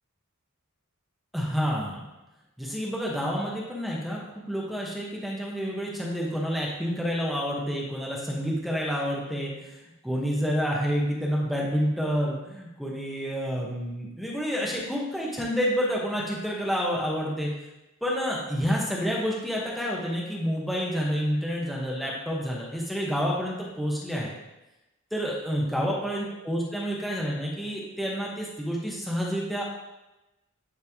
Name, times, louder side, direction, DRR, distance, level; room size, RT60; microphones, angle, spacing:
voice 1, 1.3-2.0 2.6-9.8 10.0-17.5 18.0-24.3 25.1-29.6, equal, ahead, -3 dB, 0.9 m, -29 dB
9.7 x 3.3 x 3.5 m, 0.98 s
head